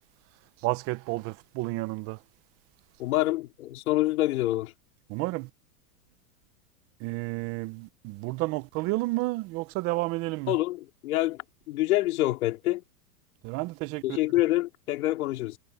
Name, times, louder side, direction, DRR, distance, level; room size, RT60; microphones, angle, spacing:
voice 1, 0.6-2.2 5.1-5.5 7.0-10.6 13.4-14.2, right 21 dB, 30° right, 0.9 m, -31 dB
voice 2, 3.0-4.7 10.5-11.4 11.7-12.8 14.0-15.6, left 16 dB, 60° left, 3.4 m, -26 dB
supercardioid pair, 145°, 47 cm